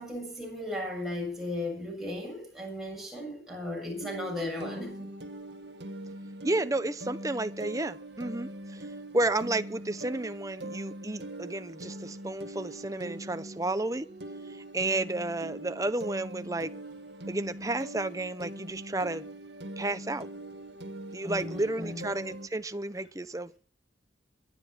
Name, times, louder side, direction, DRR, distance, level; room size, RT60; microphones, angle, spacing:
voice 1, 0.0-5.1 21.2-22.1, left 1 dB, ahead, 7.6 m, -36 dB
sound 1, 3.9-22.5, right 1 dB, 65° right, 1.6 m, -42 dB
voice 2, 6.4-14.1 14.5-16.7 17.3-19.3 19.8-20.3 21.1-23.6, right 2 dB, 20° right, 0.7 m, -32 dB
22.5 x 10.0 x 5.8 m
head